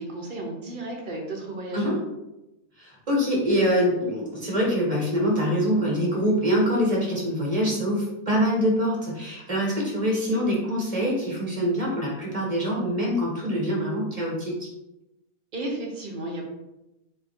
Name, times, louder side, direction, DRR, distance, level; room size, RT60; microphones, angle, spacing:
voice 1, 0.0-1.9 15.5-16.5, right 1 dB, 40° right, -1 dB, 0.8 m, -33 dB
voice 2, 2.8-14.7, equal, 25° right, -3 dB, 1.3 m, -24 dB
4.1 x 2.8 x 4.3 m, 0.95 s
omnidirectional pair, 1.7 m